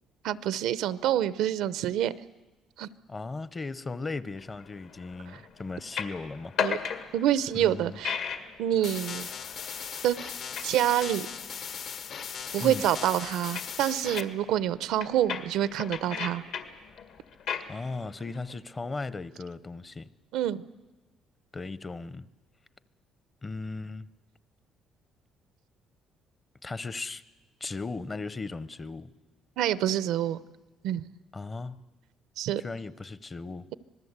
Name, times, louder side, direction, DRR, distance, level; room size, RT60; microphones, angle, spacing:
voice 1, 0.2-2.1 2.8-2.9 5.3-5.4 6.6-6.8 7.1-8.2 8.6-9.3 10.0-10.3 10.6-11.3 12.5-16.4 20.3-20.6 29.6-30.4 30.8-31.0 32.4-32.6, right 11 dB, 85° right, 0.7 m, -27 dB
voice 2, 3.1-6.9 7.6-8.0 12.6-12.8 17.7-20.1 21.5-22.3 23.4-24.1 26.6-27.2 27.6-29.1 31.3-31.8 32.6-33.7, left 3 dB, 25° left, 0.7 m, -37 dB
sound 1, 4.4-18.6, left 7 dB, 75° left, 2.0 m, -38 dB
sound 2, 8.8-14.2, left 7 dB, 55° left, 0.9 m, -38 dB
26.0 x 19.5 x 8.1 m
cardioid pair, 135°, 0 cm